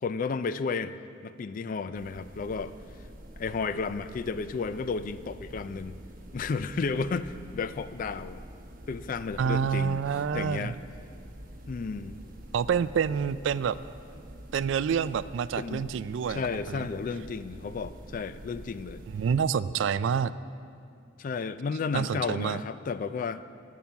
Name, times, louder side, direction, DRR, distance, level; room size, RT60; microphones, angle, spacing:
voice 1, 0.0-1.0 1.2-2.7 3.4-6.0 6.3-8.4 8.9-10.0 10.3-10.8 11.7-12.2 15.6-15.9 16.3-19.0 21.2-23.4, left 4 dB, 45° left, 13 dB, 0.3 m, -32 dB
sound 1, 1.9-19.4, right 1 dB, 50° right, 1.1 m, -47 dB
voice 2, 9.4-10.7 12.5-13.8 14.5-16.9 19.1-20.3 21.9-22.6, right 7 dB, 70° right, 16 dB, 0.3 m, -28 dB
12.5 x 6.0 x 7.1 m, 2.4 s
head